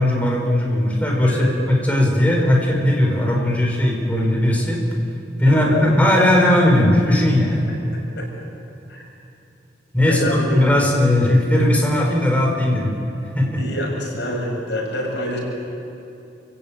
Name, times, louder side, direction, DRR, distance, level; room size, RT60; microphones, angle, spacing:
voice 1, 0.0-4.8 5.4-7.7 9.9-12.9 13.3-13.6, left 1 dB, 10° left, -1 dB, 4.8 m, -18 dB
voice 2, 5.5-6.0 7.9-8.3 8.9-9.0 10.0-10.6 13.6-15.4, left 1 dB, 80° left, -1 dB, 7.5 m, -27 dB
28.5 x 17.0 x 8.9 m, 2.7 s
head